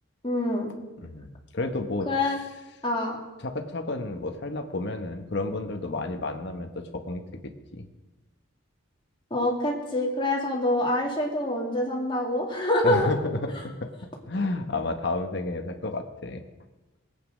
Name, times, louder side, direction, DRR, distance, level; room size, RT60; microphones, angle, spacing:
voice 1, 0.2-0.7 2.1-2.4 2.8-3.2 9.3-13.1, left 1 dB, 25° left, -1 dB, 2.5 m, -25 dB
voice 2, 1.0-2.1 3.4-7.2 7.7-7.9 12.8-13.9 14.3-16.4, left 2 dB, 55° left, 6 dB, 1.2 m, -31 dB
20.0 x 8.5 x 6.2 m, 1.1 s
head